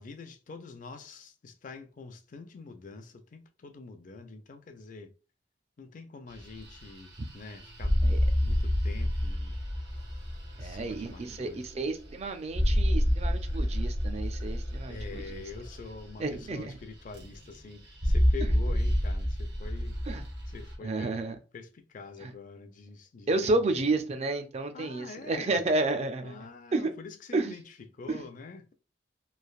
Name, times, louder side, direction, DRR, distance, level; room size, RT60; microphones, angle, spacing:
voice 1, 0.0-5.1 5.8-7.9 8.4-9.6 10.6-11.7 14.9-20.0 20.5-23.9 24.7-25.6 26.2-27.6 27.9-28.7, left 4 dB, 45° left, 0.4 m, -45 dB
sound 1, 6.3-16.8 17.1-17.6 17.9-20.8, equal, 70° right, 0.9 m, -29 dB
voice 2, 10.6-15.4 16.2-16.7 18.4-18.6 20.1-20.2 20.8-21.4 22.2-22.3 23.3-26.4 26.7-26.9 27.3-27.6 28.1-28.2, right 2 dB, 35° right, 0.4 m, -31 dB
3.2 x 2.4 x 2.4 m
head